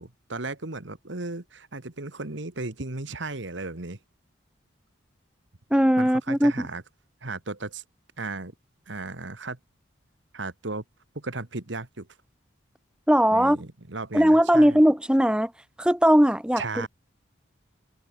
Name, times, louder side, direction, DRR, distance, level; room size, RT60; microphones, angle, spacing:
voice 1, 0.0-4.0 6.0-6.8 7.2-7.8 8.2-8.5 8.9-9.6 10.3-10.8 11.2-12.1 13.3-14.8 16.6-16.9, right 3 dB, 65° right, 1.8 m, -35 dB
voice 2, 5.7-6.5 13.1-13.6 14.1-15.5 15.8-16.8, equal, 5° right, 1.4 m, -19 dB
head